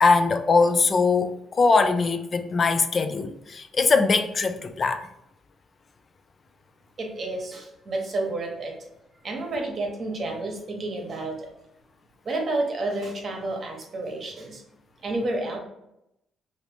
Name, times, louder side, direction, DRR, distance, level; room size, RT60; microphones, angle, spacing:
voice 1, 0.0-5.1, left 4 dB, 40° left, 0.3 m, -21 dB
voice 2, 7.0-8.7 9.2-11.5 12.2-14.6 15.0-15.6, right 2 dB, 45° right, 1.0 m, -30 dB
2.9 x 2.6 x 3.3 m
cardioid pair, 90°, 0 cm